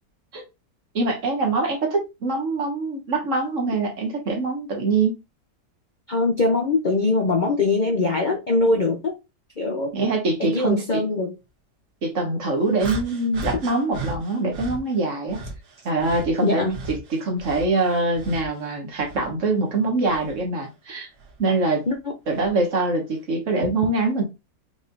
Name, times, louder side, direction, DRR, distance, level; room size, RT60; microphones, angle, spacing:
voice 1, 0.9-5.2 9.9-11.0 12.0-15.4 15.8-21.1 21.4-21.8 22.3-24.2, right 3 dB, 50° right, 1.4 m, -24 dB
voice 2, 6.1-9.1 9.6-9.9 10.4-11.3 16.4-16.8 21.9-22.1, left 3 dB, 80° left, 0.4 m, -22 dB
sound 1, 12.8-14.8 15.3-18.6 19.0-20.4 21.2-21.4 22.3-22.5, right 2 dB, 65° right, 1.7 m, -36 dB
5.1 x 3.2 x 2.6 m
omnidirectional pair, 1.9 m